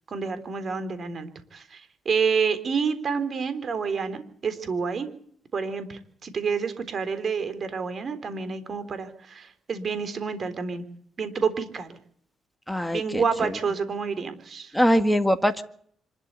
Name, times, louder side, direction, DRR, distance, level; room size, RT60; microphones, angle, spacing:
voice 1, 0.1-5.1 5.5-10.8 11.2-12.0 12.9-14.7, right 5 dB, 45° right, 11 dB, 3.7 m, -28 dB
voice 2, 12.7-13.2 14.7-15.6, equal, ahead, 7 dB, 1.9 m, -22 dB
25.5 x 12.5 x 8.3 m, 0.62 s
cardioid pair, 90°, 0 cm